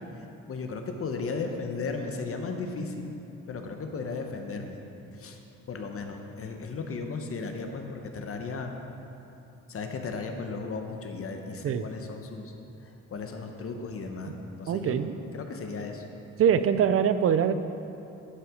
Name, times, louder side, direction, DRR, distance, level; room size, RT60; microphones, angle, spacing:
voice 1, 0.2-3.1 3.5-4.8 5.2-5.4 5.7-8.7 9.7-12.5 12.8-15.0 15.3-16.0, left 4 dB, 50° left, 4 dB, 0.9 m, -35 dB
voice 2, 14.7-15.1 16.4-17.5, right 8 dB, 50° right, 11 dB, 0.5 m, -23 dB
11.5 x 5.7 x 5.0 m, 2.8 s
cardioid pair, 90°, 30 cm